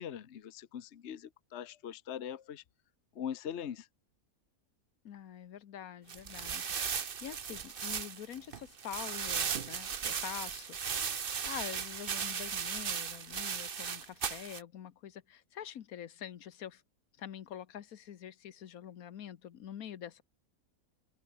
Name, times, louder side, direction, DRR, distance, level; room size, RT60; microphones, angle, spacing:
voice 1, 0.0-2.6 3.1-3.9, left 9 dB, 55° left, 1.2 m, -41 dB
voice 2, 5.0-11.2 11.4-16.8 17.2-20.2, left 10 dB, 75° left, 1.5 m, -46 dB
sound 1, 6.1-14.6, right 7 dB, 45° right, 1.0 m, -37 dB
omnidirectional pair, 1.5 m